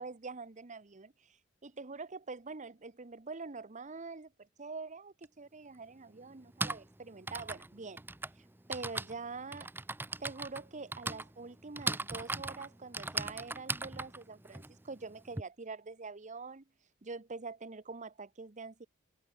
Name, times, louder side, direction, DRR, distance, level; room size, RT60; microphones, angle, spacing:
voice 1, 0.0-1.4 1.6-8.0 8.7-9.7 10.2-16.6 17.0-18.9, right 4 dB, 35° right, 1.0 m, -45 dB
Typing, 5.2-5.3 6.3-15.4, right 2 dB, 10° right, 0.7 m, -39 dB
head